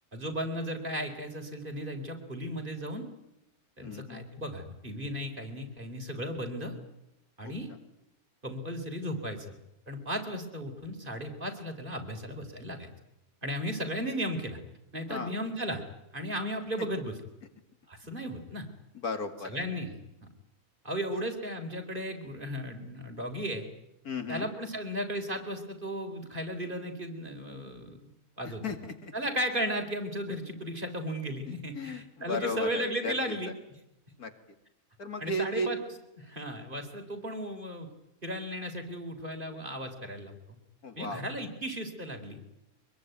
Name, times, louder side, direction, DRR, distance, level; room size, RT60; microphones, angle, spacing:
voice 1, 0.1-3.1 3.8-6.8 7.4-7.7 8.4-9.6 9.9-12.9 13.4-14.6 14.9-15.8 16.1-17.2 17.9-18.7 19.4-20.0 20.8-23.7 24.3-28.0 28.4-28.6 29.1-33.5 35.2-35.8 36.2-37.9 38.2-40.6 41.0-42.4, equal, 35° right, 4 dB, 4.2 m, -35 dB
voice 2, 3.8-4.2 7.4-7.5 15.1-15.3 18.9-19.5 21.1-21.2 24.0-24.5 28.4-29.1 31.5-33.4 34.2-34.3 35.0-35.7 40.8-41.2, left 2 dB, 80° left, 7 dB, 2.8 m, -35 dB
24.5 x 22.0 x 9.4 m, 0.87 s
omnidirectional pair, 1.6 m